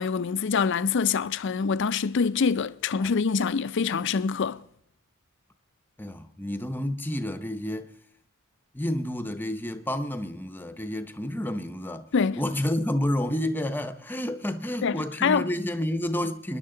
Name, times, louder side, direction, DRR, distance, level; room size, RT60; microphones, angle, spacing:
voice 1, 0.0-4.6 12.1-12.4 14.8-15.5, left 5 dB, 55° left, 0.5 m, -25 dB
voice 2, 6.0-7.9 8.7-12.1 12.4-16.6, left 1 dB, 10° left, 0.7 m, -30 dB
25.0 x 11.0 x 3.8 m
head